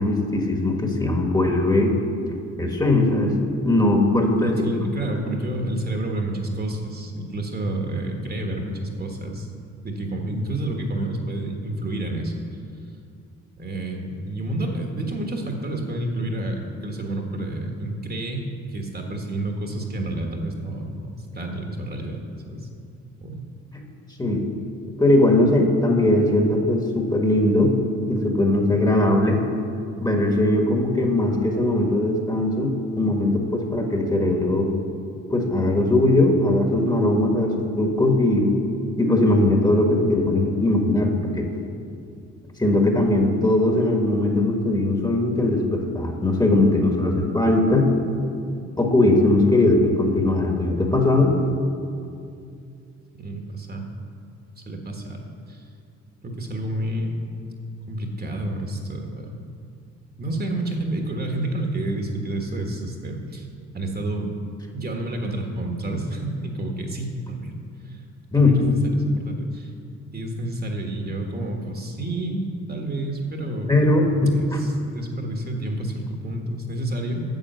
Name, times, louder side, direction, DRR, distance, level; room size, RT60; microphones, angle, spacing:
voice 1, 0.0-2.0 2.6-3.3 3.6-4.6 24.2-24.4 25.0-27.7 28.1-29.4 30.0-34.7 35.3-38.5 39.0-41.5 42.6-47.9 48.8-51.3 68.3-68.8 73.7-74.6, left 2 dB, 15° left, 2 dB, 1.5 m, -20 dB
voice 2, 4.4-9.5 9.8-12.3 13.6-18.4 18.7-22.7 23.2-23.5 53.2-53.9 54.7-55.2 55.5-55.6 56.2-57.1 57.9-59.4 60.2-63.5 63.7-64.3 64.7-67.5 67.8-68.0 68.3-69.7 70.1-77.2, right 1 dB, 30° right, 2 dB, 1.4 m, -29 dB
9.2 x 7.0 x 6.9 m, 2.4 s
cardioid pair, 90°, 30 cm